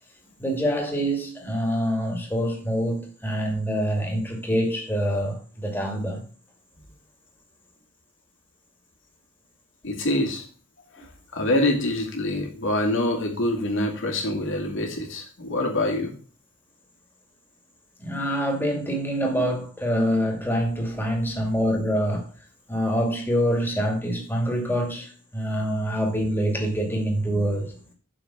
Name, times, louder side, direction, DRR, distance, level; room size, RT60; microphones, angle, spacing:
voice 1, 0.4-6.2 18.0-22.3 22.7-27.8, equal, 10° left, 2.4 m, -25 dB
voice 2, 9.8-10.4 11.0-11.1 11.3-16.1, left 1 dB, 65° left, 2.5 m, -25 dB
7.0 x 5.8 x 7.0 m
head